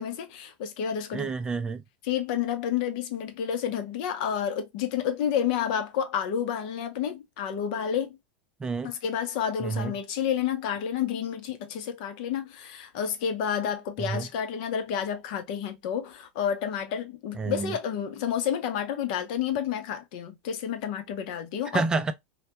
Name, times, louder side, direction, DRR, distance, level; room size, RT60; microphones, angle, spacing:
voice 1, 0.0-1.3 2.0-8.2 8.8-21.8, left 8 dB, 65° left, 0.6 m, -30 dB
voice 2, 1.1-1.8 8.6-8.9 9.6-9.9 14.0-14.3 17.3-17.8 21.7-22.1, right 4 dB, 15° right, 0.3 m, -29 dB
2.2 x 2.1 x 2.7 m
supercardioid pair, 125°, 5 cm